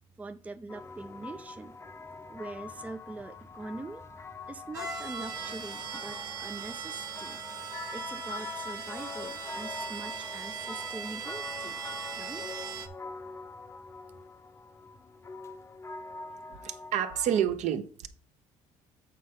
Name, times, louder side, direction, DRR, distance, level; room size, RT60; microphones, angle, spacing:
voice 1, 0.2-1.8 2.3-4.0 4.5-7.4 7.9-11.8 12.1-12.5, right 3 dB, 10° right, 0.5 m, -43 dB
sound 1, 0.7-17.5, left 3 dB, 20° left, 0.7 m, -44 dB
sound 2, 4.7-12.9, right 6 dB, 30° right, 1.2 m, -39 dB
voice 2, 16.5-18.1, right 9 dB, 65° right, 1.1 m, -29 dB
8.3 x 4.4 x 5.2 m
cardioid pair, 125°, 13 cm